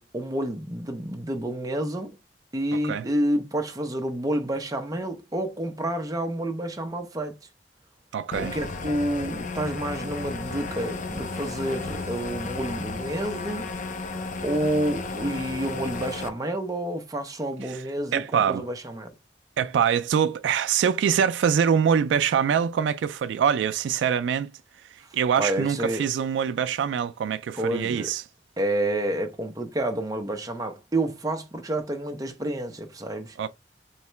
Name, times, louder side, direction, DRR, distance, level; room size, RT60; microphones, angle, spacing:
voice 1, 0.0-2.2 2.5-7.3 8.4-13.7 14.4-19.1 25.4-26.0 27.5-28.1 28.6-33.4, right 1 dB, 20° right, 0.6 m, -29 dB
voice 2, 8.1-8.5 17.7-17.8 18.1-18.7 19.6-24.5 25.1-28.2 33.4-33.5, right 7 dB, 80° right, 0.3 m, -24 dB
sound 1, 8.3-16.3, left 3 dB, 45° left, 0.5 m, -33 dB
3.2 x 2.8 x 4.3 m
head